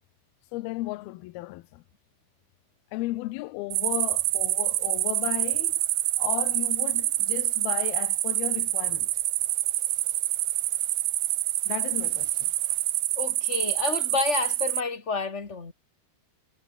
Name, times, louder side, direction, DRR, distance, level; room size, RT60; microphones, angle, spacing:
voice 1, 0.5-1.8 2.9-5.8 6.2-9.1 11.7-12.5, left 19 dB, 80° left, 2.2 m, -34 dB
sound 1, 3.7-14.8, right 16 dB, 75° right, 2.4 m, -26 dB
voice 2, 13.1-15.7, left 4 dB, 50° left, 0.8 m, -29 dB
omnidirectional pair, 5.5 m